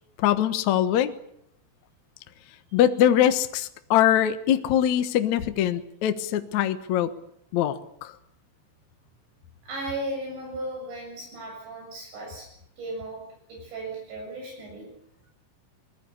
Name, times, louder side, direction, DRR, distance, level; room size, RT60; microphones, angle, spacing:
voice 1, 0.2-1.1 2.7-7.1 7.5-8.1, left 11 dB, 85° left, 10 dB, 1.6 m, -22 dB
voice 2, 9.6-12.5 12.8-13.2 13.5-14.9, right 1 dB, 70° right, -1 dB, 9.8 m, -35 dB
25.5 x 20.5 x 7.0 m, 0.73 s
omnidirectional pair, 5.4 m